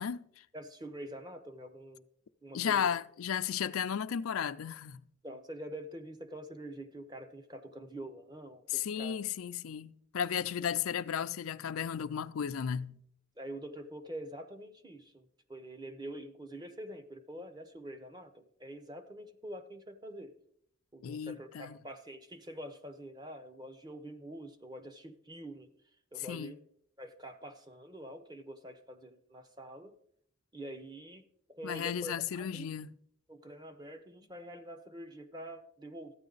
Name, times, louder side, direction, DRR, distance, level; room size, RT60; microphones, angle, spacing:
voice 1, 0.0-0.4 2.5-5.0 8.7-13.0 21.0-21.8 26.2-26.5 31.6-32.9, left 8 dB, 85° left, 0.4 m, -34 dB
voice 2, 0.5-2.1 2.4-2.9 5.2-9.2 13.4-20.4 20.9-25.7 26.1-26.6 27.0-30.0 30.5-32.7 33.3-36.1, right 1 dB, 20° right, 0.8 m, -46 dB
14.0 x 9.2 x 4.0 m
head